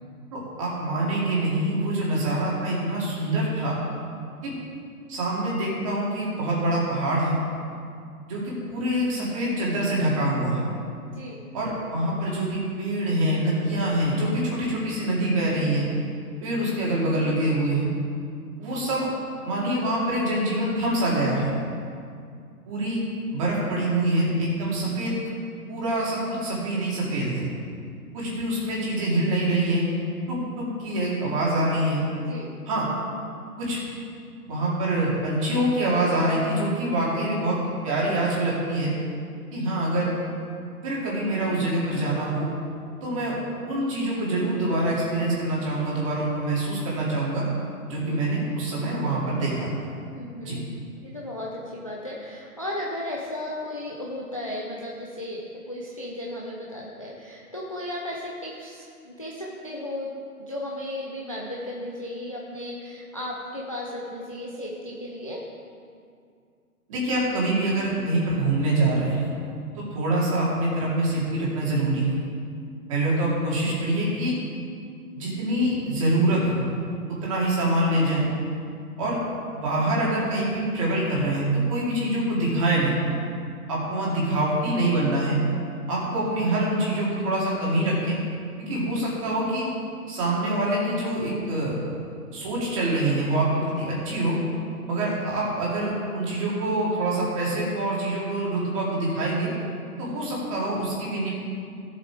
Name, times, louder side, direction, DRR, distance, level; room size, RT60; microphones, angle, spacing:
voice 1, 0.3-3.8 4.4-4.5 5.1-7.4 8.3-10.6 11.5-15.9 16.4-17.9 18.6-19.1 19.4-21.5 22.7-23.0 23.3-25.1 25.7-27.4 28.1-29.9 30.3-32.0 32.7-32.9 33.6-33.8 34.5-37.6 37.8-38.9 39.5-40.1 40.8-42.5 43.0-43.4 43.7-47.4 47.9-49.7 50.4-50.6 66.9-69.3 69.7-72.2 72.9-74.3 75.1-76.7 77.1-78.3 79.0-79.2 79.5-82.9 83.7-85.4 85.9-88.2 88.6-89.6 90.1-91.8 92.3-94.4 94.9-99.5 100.0-101.3, right 1 dB, 20° right, -6 dB, 2.5 m, -25 dB
voice 2, 11.1-11.4 32.1-32.5 48.0-48.2 50.1-50.7 51.0-60.1 60.4-65.4, left 1 dB, 25° left, -3 dB, 0.5 m, -35 dB
15.5 x 7.7 x 4.7 m, 2.3 s
hypercardioid pair, 175°, 46 cm